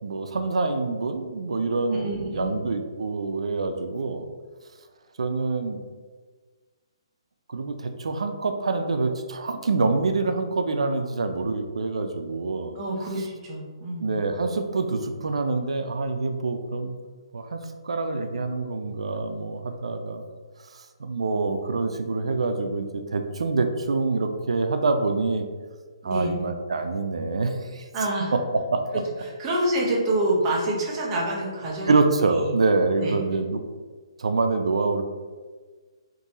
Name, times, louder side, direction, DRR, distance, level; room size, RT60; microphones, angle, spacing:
voice 1, 0.0-4.2 5.2-5.8 7.5-12.8 14.0-16.9 17.3-20.2 20.7-25.5 26.0-27.9 28.3-28.4 28.7-28.8 31.8-33.6 34.2-35.0, right 3 dB, 85° right, 6 dB, 0.5 m, -26 dB
voice 2, 1.9-2.6 12.7-14.1 26.0-26.4 27.9-28.3 29.4-32.0 32.4-32.5 33.0-33.2, right 1 dB, 15° right, -5 dB, 0.6 m, -27 dB
3.8 x 2.7 x 4.0 m, 1.4 s
hypercardioid pair, 175°, 3 cm